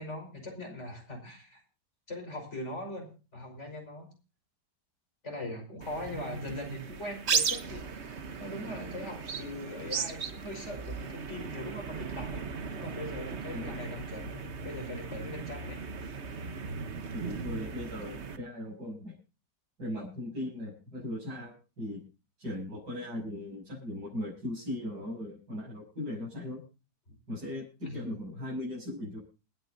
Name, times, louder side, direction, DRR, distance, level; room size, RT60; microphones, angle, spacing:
voice 1, 0.0-1.6 2.1-4.1 5.2-12.4 12.7-15.8 27.8-28.1, left 1 dB, 40° left, 2 dB, 5.9 m, -41 dB
sound 1, 5.8-18.4, right 5 dB, 45° right, 1.2 m, -37 dB
voice 2, 17.1-19.1 19.8-22.0 22.4-26.6 27.3-29.2, left 1 dB, 85° right, -6 dB, 7.5 m, -38 dB
28.5 x 9.6 x 2.7 m, 0.33 s
omnidirectional pair, 1.8 m